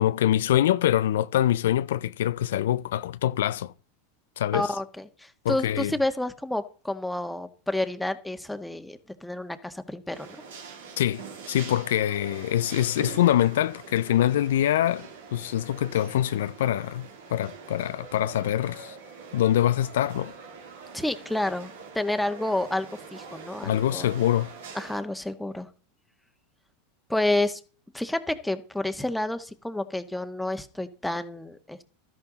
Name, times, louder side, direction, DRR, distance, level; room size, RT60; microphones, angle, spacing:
voice 1, 0.0-3.7 4.4-4.7 5.4-5.9 11.0-19.0 19.3-20.3 23.6-24.5, left 12 dB, 75° left, 0.5 m, -24 dB
voice 2, 4.5-10.4 20.9-24.1 24.8-25.7 27.1-27.6 27.9-31.8, left 1 dB, 5° left, 1.6 m, -30 dB
sound 1, 10.1-25.0, right 5 dB, 75° right, 3.1 m, -44 dB
13.5 x 11.0 x 4.1 m
hypercardioid pair, 95°, 0 cm